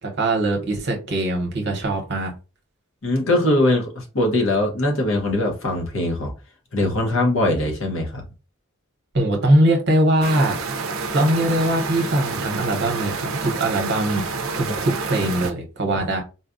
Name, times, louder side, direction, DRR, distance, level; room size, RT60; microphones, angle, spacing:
voice 1, 0.0-2.3 9.1-10.6 11.1-14.3 14.6-16.2, right 1 dB, 50° right, 0.8 m, -21 dB
voice 2, 3.0-6.3 6.7-8.2 15.9-16.0, left 1 dB, 60° left, 1.0 m, -21 dB
sound 1, 10.2-15.5, right 4 dB, 70° right, 0.5 m, -28 dB
4.1 x 2.2 x 2.5 m
head